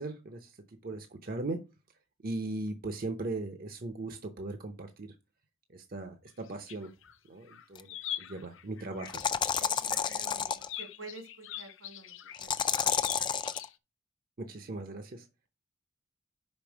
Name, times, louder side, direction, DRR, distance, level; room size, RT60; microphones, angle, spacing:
voice 1, 0.0-1.6 2.2-5.1 5.7-6.9 7.3-9.2 14.4-15.3, right 2 dB, 45° right, 7 dB, 0.7 m, -38 dB
sound 1, 6.3-7.1 7.5-13.7, left 11 dB, 70° left, 0.6 m, -44 dB
sound 2, 7.7-7.8 9.0-10.7 12.4-13.6, left 7 dB, 25° left, 0.4 m, -30 dB
voice 2, 9.5-10.4 10.8-12.5, right 3 dB, 85° right, 3 dB, 3.0 m, -49 dB
5.3 x 5.3 x 6.1 m, 0.28 s
head